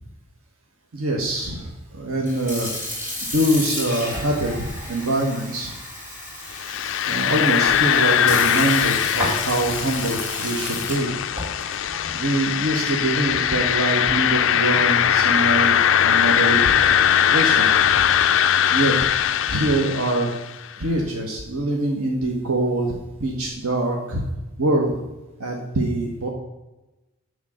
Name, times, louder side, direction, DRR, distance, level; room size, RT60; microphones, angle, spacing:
voice 1, 0.9-1.7 2.0-2.7 3.3-5.7 7.0-11.1 12.1-15.7 16.0-16.6 17.3-17.7 18.0-18.1 18.7-18.9 19.5-20.3 20.8-22.9 23.2-24.2 24.6-25.0 25.4-26.3, right 1 dB, 85° right, -1 dB, 1.3 m, -24 dB
Sink (filling or washing) / Fill (with liquid), 2.1-13.7, left 1 dB, 10° right, 3.5 m, -33 dB
sound 1, 6.5-20.5, left 9 dB, 60° left, 0.4 m, -20 dB
11.0 x 3.7 x 6.4 m, 1.0 s
head